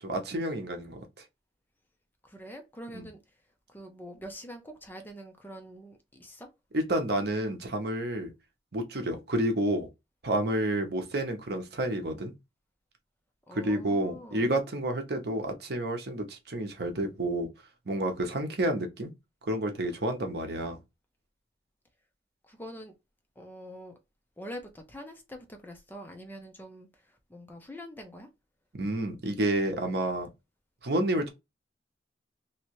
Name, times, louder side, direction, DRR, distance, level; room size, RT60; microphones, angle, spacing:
voice 1, 0.0-1.0 2.9-3.1 6.7-8.3 8.7-9.9 10.2-12.3 13.5-17.5 17.9-19.1 19.5-20.8 28.7-30.3 30.8-31.3, right 1 dB, 60° right, 0.9 m, -30 dB
voice 2, 2.2-3.2 3.7-6.5 13.5-14.5 22.4-22.9 23.4-23.9 24.4-28.3, equal, 10° left, 0.5 m, -45 dB
3.2 x 2.8 x 3.0 m
head